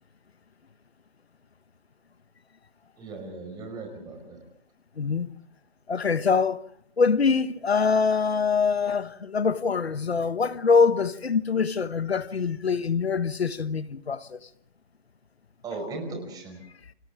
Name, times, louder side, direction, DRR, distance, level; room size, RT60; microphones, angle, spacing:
voice 1, 3.0-4.4 15.6-16.6, right 3 dB, 10° right, 5.1 m, -37 dB
voice 2, 5.0-5.3 5.9-6.6 7.0-14.4, left 5 dB, 85° left, 1.3 m, -24 dB
30.0 x 27.0 x 3.6 m
hypercardioid pair, 150°, 31 cm